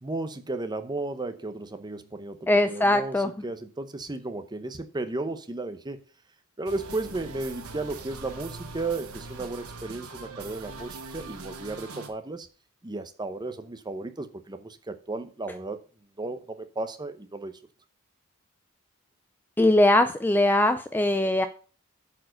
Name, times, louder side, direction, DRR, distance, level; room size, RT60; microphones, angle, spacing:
voice 1, 0.0-6.0 6.6-12.5 12.8-15.8 16.2-17.6, right 2 dB, 20° right, 0.7 m, -34 dB
voice 2, 2.5-3.3 19.6-21.5, left 1 dB, 10° left, 0.4 m, -21 dB
sound 1, 6.7-12.1, right 3 dB, 80° right, 1.2 m, -42 dB
8.4 x 4.7 x 6.4 m
head